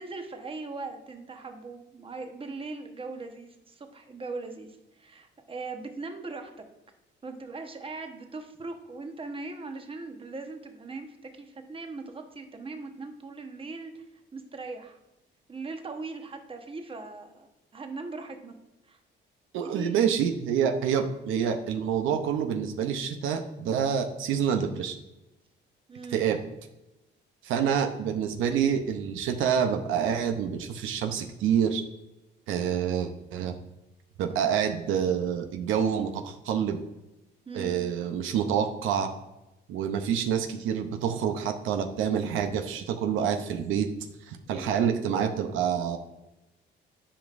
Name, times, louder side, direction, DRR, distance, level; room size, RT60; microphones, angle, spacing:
voice 1, 0.0-6.6 7.2-14.0 14.3-15.0 15.5-18.5 18.8-19.0 19.6-20.0 25.9-26.3 37.5-37.8 44.4-44.8, right 3 dB, 25° right, 5 dB, 1.0 m, -40 dB
voice 2, 19.5-25.0 26.1-26.4 27.4-31.8 32.5-33.5 34.2-36.8 37.5-39.1 39.7-43.9 44.3-46.0, right 8 dB, 85° right, 6 dB, 0.7 m, -27 dB
9.9 x 5.1 x 2.5 m, 0.97 s
cardioid pair, 90°, 20 cm